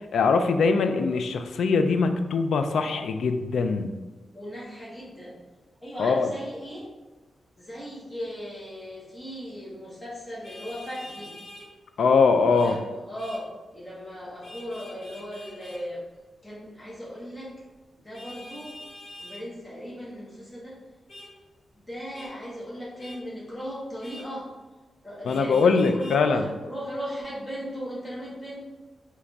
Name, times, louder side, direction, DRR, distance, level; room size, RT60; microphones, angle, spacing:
voice 1, 0.1-3.9 6.0-6.3 12.0-12.8 25.3-26.5, left 4 dB, 85° left, 7 dB, 0.3 m, -22 dB
voice 2, 4.3-5.4 5.8-6.9 7.6-11.3 12.5-16.0 16.4-17.5 17.9-18.8 19.2-20.8 21.8-24.5 25.0-28.6, equal, 15° left, -6 dB, 1.2 m, -37 dB
Vehicle horn car horn honking, 10.4-11.7 12.5-12.8 13.2-13.4 14.4-15.8 18.1-19.4 21.1-21.3 22.1-22.3 23.0-23.2 24.0-24.3 25.2-26.2, left 1 dB, 60° left, 1.1 m, -45 dB
3.7 x 3.1 x 3.4 m, 1.2 s
wide cardioid pair, 155°, 0 cm